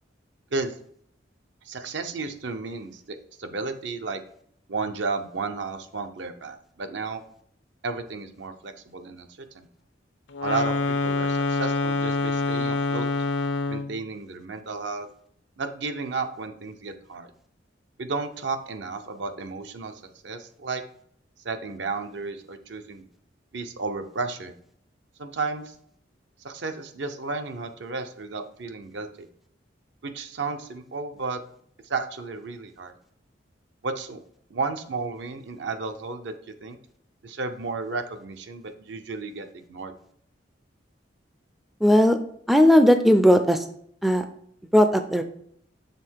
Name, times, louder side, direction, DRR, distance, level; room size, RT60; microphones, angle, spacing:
voice 1, 1.6-4.2 4.7-7.2 7.8-9.7 10.4-10.7 11.0-13.1 13.7-15.1 15.6-17.3 18.0-20.8 21.4-23.0 23.5-24.5 25.2-25.7 26.4-29.3 30.0-31.4 31.8-33.0 33.8-34.2 34.5-36.8 37.2-39.9, right 4 dB, 75° right, 7 dB, 0.7 m, -33 dB
sound 1, 10.3-14.0, left 3 dB, 75° left, 0.6 m, -26 dB
voice 2, 41.8-42.2 42.5-43.6 44.0-44.2 44.7-45.2, equal, ahead, 7 dB, 0.3 m, -17 dB
6.7 x 3.6 x 4.5 m, 0.66 s
head